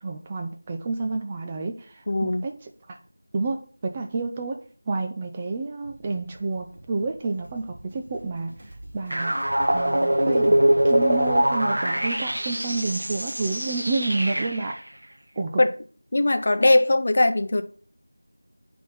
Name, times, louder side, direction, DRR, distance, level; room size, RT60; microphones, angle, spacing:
voice 1, 0.0-3.0 3.3-8.6 8.9-9.4 9.7-10.6 10.8-14.8 15.4-15.6, right 3 dB, 15° right, 0.4 m, -30 dB
voice 2, 2.1-2.4 15.6-15.7 16.1-17.6, left 2 dB, 40° left, 0.7 m, -20 dB
sound 1, 5.8-11.4, right 1 dB, 35° right, 3.0 m, -46 dB
sound 2, 9.1-14.8, right 1 dB, 75° right, 0.7 m, -23 dB
10.0 x 3.8 x 4.0 m
figure-of-eight pair, 175°, 0 cm